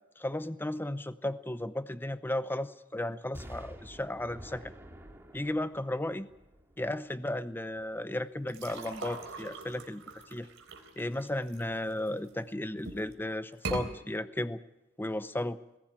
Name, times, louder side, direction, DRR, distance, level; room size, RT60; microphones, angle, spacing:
voice 1, 0.2-4.7 5.3-6.3 6.8-10.0 10.3-10.5 11.0-14.6 15.0-15.6, left 1 dB, 10° left, 13 dB, 0.7 m, -34 dB
Explosion, 3.3-7.3 7.7-7.8, equal, 10° right, 2.4 m, -49 dB
sound 1, 8.5-12.3 12.8-13.2 13.5-13.9, right 3 dB, 75° right, 3.9 m, -41 dB
20.5 x 16.5 x 8.7 m, 0.96 s
head